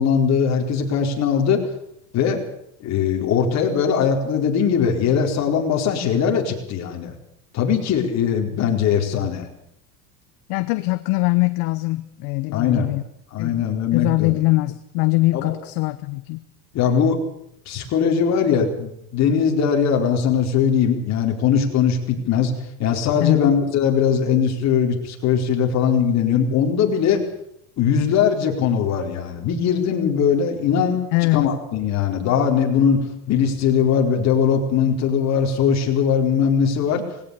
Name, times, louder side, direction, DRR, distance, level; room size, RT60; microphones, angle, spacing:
voice 1, 0.0-1.7 2.1-2.4 2.8-7.1 7.5-9.5 12.5-12.9 13.3-14.3 15.3-15.5 16.7-17.2 17.7-22.5 22.8-27.2 27.8-31.0 31.3-37.0, left 7 dB, 40° left, 2 dB, 4.5 m, -20 dB
voice 2, 10.5-13.0 13.4-13.6 13.9-16.4 23.2-23.6 31.1-31.5, left 21 dB, 55° left, 12 dB, 1.2 m, -22 dB
20.0 x 17.0 x 8.5 m, 0.74 s
supercardioid pair, 140°, 42 cm